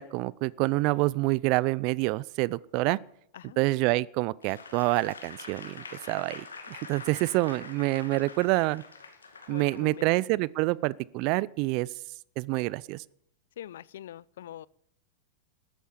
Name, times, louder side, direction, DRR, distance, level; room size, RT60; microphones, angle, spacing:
voice 1, 0.0-3.0 3.6-8.8 9.5-11.9 12.4-13.0, right 21 dB, 50° right, 0.5 m, -27 dB
Applause / Crowd, 4.4-10.1 10.7-10.8, left 4 dB, 85° left, 2.3 m, -45 dB
voice 2, 9.5-10.1 13.6-14.7, left 11 dB, 65° left, 0.5 m, -44 dB
13.5 x 11.5 x 7.3 m
hypercardioid pair, 100°, 0 cm